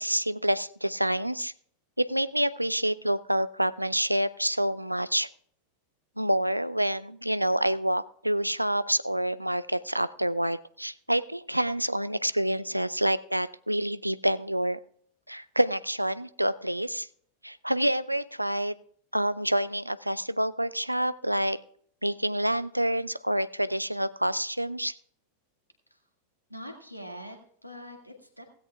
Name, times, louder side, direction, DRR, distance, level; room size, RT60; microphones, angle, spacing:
voice 1, 0.0-1.5 2.0-5.3 6.2-14.8 15.3-17.1 17.4-18.7 19.1-21.6 22.0-24.9, right 1 dB, 90° right, 17 dB, 0.4 m, -27 dB
voice 2, 26.5-28.4, equal, 90° left, 4 dB, 1.8 m, -43 dB
16.5 x 16.0 x 2.3 m, 0.62 s
figure-of-eight pair, 90°, 0 cm